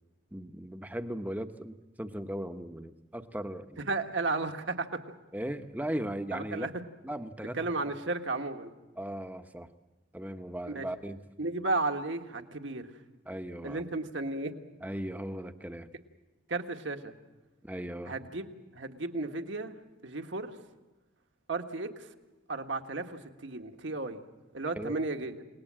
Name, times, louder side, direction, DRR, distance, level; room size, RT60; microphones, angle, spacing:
voice 1, 0.3-3.8 5.3-6.7 7.0-7.6 9.0-9.7 10.1-11.2 13.3-13.8 14.8-15.9 17.6-18.1 24.7-25.0, right 1 dB, 10° right, 8 dB, 0.9 m, -37 dB
voice 2, 3.9-5.0 6.3-6.7 7.5-8.7 10.7-10.9 11.4-12.9 13.6-14.5 16.5-17.1 18.1-19.7 20.0-20.5 21.5-22.1 22.5-24.2 24.5-25.3, right 3 dB, 65° right, 5 dB, 1.6 m, -34 dB
29.5 x 19.5 x 7.6 m, 1.1 s
head